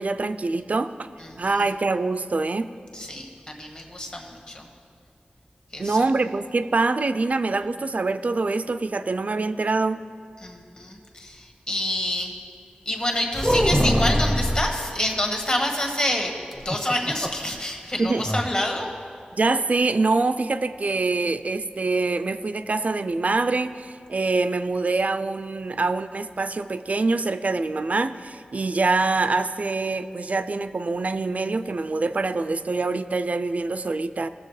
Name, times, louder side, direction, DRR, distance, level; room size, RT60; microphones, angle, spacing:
voice 1, 0.0-1.1 1.4-2.7 5.8-10.0 18.0-18.3 19.3-34.3, right 3 dB, 50° right, 11 dB, 0.4 m, -25 dB
voice 2, 1.2-1.6 2.9-4.7 5.7-6.0 10.4-12.3 12.8-18.9, left 1 dB, 30° left, 1 dB, 1.4 m, -28 dB
sound 1, 13.3-14.8 16.5-17.5 17.8-17.9 18.2-18.5, equal, ahead, 0.7 m, -22 dB
18.5 x 7.0 x 3.2 m, 2.3 s
wide cardioid pair, 90°, 3 cm